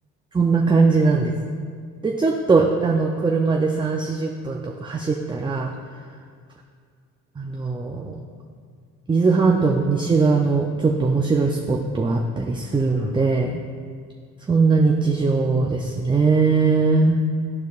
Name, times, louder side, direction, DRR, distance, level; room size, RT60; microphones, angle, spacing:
voice 1, 0.3-1.3 2.0-5.7 7.4-8.1 9.1-13.6 14.5-17.2, right 4 dB, 15° right, 1 dB, 0.5 m, -20 dB
13.0 x 4.6 x 2.4 m, 2.1 s
cardioid pair, 90°, 30 cm